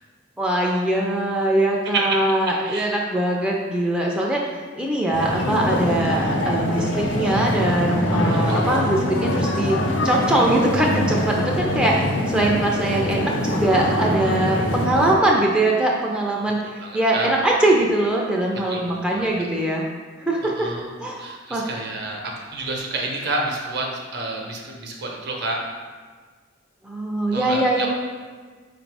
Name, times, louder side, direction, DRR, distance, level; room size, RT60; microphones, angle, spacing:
voice 1, 0.4-16.6 16.9-19.8 20.2-20.7 21.0-21.2 21.5-21.7 26.8-27.9, right 1 dB, 5° right, -3 dB, 0.3 m, -22 dB
sound 1, 5.1-15.2, left 1 dB, 75° left, 0.5 m, -23 dB
voice 2, 8.5-9.0 16.8-17.3 18.7-19.3 20.4-20.9 21.2-25.6 27.3-27.9, right 2 dB, 60° right, 0 dB, 0.7 m, -29 dB
4.3 x 2.5 x 4.6 m, 1.5 s
head